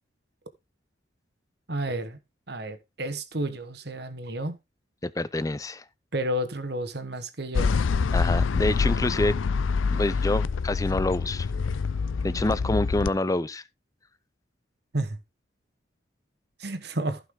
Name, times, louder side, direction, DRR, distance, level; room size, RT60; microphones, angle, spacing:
voice 1, 1.7-2.2 2.5-4.6 6.1-7.7 14.9-15.2 16.6-17.2, right 1 dB, 55° right, 1.3 m, -31 dB
voice 2, 5.0-5.8 8.1-9.3 9.9-11.5 12.2-13.6, left 2 dB, 15° left, 0.5 m, -27 dB
sound 1, 7.5-13.1, left 5 dB, 85° left, 0.5 m, -26 dB
14.5 x 5.7 x 3.7 m
head